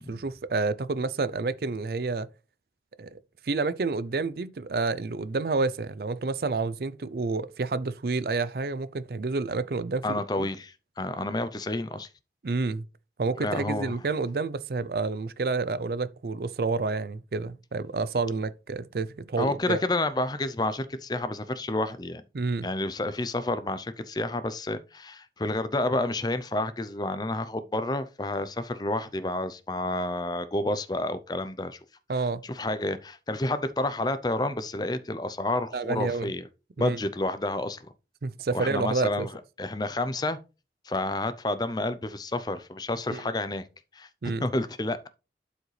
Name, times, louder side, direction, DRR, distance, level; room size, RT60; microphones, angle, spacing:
voice 1, 0.1-2.3 3.0-3.2 3.4-10.5 12.4-12.9 13.2-19.8 22.3-22.7 32.1-32.5 35.7-36.3 36.8-37.0 38.2-39.3 43.1-43.2 44.2-44.5, right 3 dB, 55° right, 0.5 m, -29 dB
voice 2, 10.0-12.1 13.4-13.9 19.4-22.2 22.6-31.8 32.4-36.4 36.8-37.8 38.5-40.4 40.8-43.6 43.9-44.1 44.4-45.1, left 2 dB, 25° left, 0.5 m, -30 dB
11.5 x 5.0 x 3.2 m
head